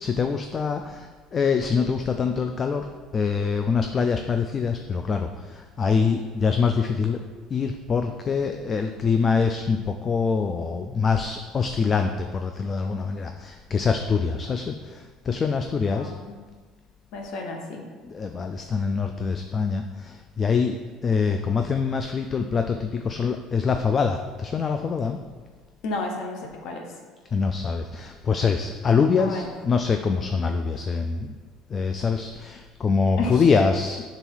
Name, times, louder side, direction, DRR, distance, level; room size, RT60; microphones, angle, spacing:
voice 1, 0.0-0.8 1.3-2.8 3.1-5.3 5.8-7.2 7.5-14.7 15.3-16.1 18.1-19.8 20.4-20.8 21.0-25.2 27.3-31.3 31.7-34.0, left 5 dB, 30° left, 6 dB, 0.3 m, -24 dB
voice 2, 15.9-16.4 17.1-17.8 25.8-26.9 29.2-29.5 33.2-33.3, left 3 dB, 70° left, 2 dB, 1.0 m, -32 dB
4.6 x 3.8 x 5.5 m, 1.5 s
cardioid pair, 120°, 0 cm